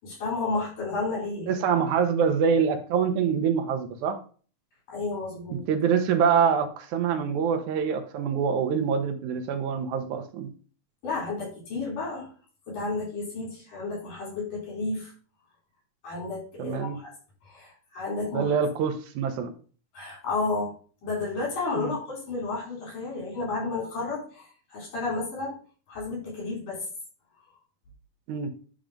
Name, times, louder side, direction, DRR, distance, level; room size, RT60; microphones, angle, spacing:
voice 1, 0.0-1.6 4.9-5.7 11.0-12.3 12.7-15.1 16.0-17.1 17.4-18.5 19.9-20.7 21.0-25.6 25.9-26.9, left 3 dB, 90° left, -3 dB, 6.0 m, -32 dB
voice 2, 1.5-4.2 5.5-10.5 16.6-17.0 18.3-19.5 21.8-21.9 28.3-28.5, right 7 dB, 75° right, 6 dB, 2.3 m, -25 dB
10.5 x 3.7 x 5.1 m, 0.41 s
omnidirectional pair, 3.6 m